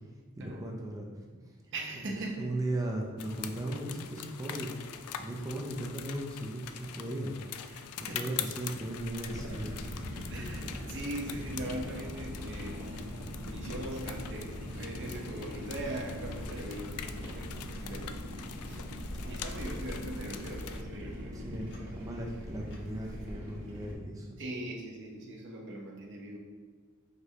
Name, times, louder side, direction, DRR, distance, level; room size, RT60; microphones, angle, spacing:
voice 1, 0.4-1.1 2.4-7.4 8.0-9.8 21.3-24.4, right 1 dB, 15° right, -1 dB, 0.4 m, -37 dB
voice 2, 1.7-2.5 7.7-8.4 10.3-12.8 13.4-18.2 18.6-18.8 19.2-21.4 24.4-26.4, right 1 dB, 55° right, 0 dB, 0.7 m, -40 dB
sound 1, 3.2-20.8, left 9 dB, 90° left, 0.3 m, -44 dB
Clock, 8.9-23.4, equal, 55° left, 0.7 m, -46 dB
sound 2, 9.3-23.9, equal, 85° right, 1.1 m, -42 dB
5.0 x 3.3 x 2.7 m, 1.5 s
head